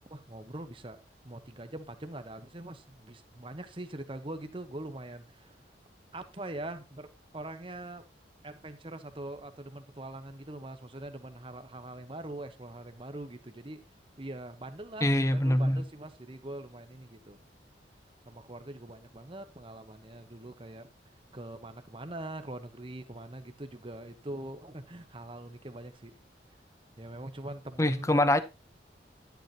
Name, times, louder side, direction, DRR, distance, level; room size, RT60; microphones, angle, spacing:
voice 1, 0.1-1.0 1.2-5.6 6.1-7.1 7.3-8.0 8.4-13.8 14.2-17.4 18.2-20.9 21.3-26.2 27.0-28.1, right 1 dB, 30° right, 1.0 m, -43 dB
voice 2, 15.0-15.8 27.8-28.4, left 1 dB, 15° left, 0.7 m, -24 dB
11.0 x 9.3 x 2.8 m
head